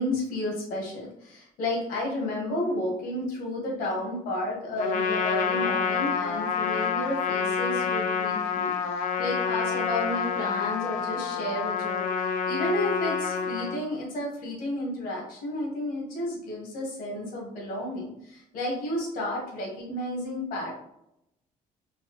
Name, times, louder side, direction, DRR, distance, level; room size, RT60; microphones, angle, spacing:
voice 1, 0.0-20.7, left 1 dB, 85° left, -2 dB, 1.4 m, -32 dB
Trumpet, 4.8-13.8, left 6 dB, 60° left, 0.4 m, -28 dB
4.0 x 2.5 x 2.9 m, 0.81 s
cardioid pair, 175°, 15 cm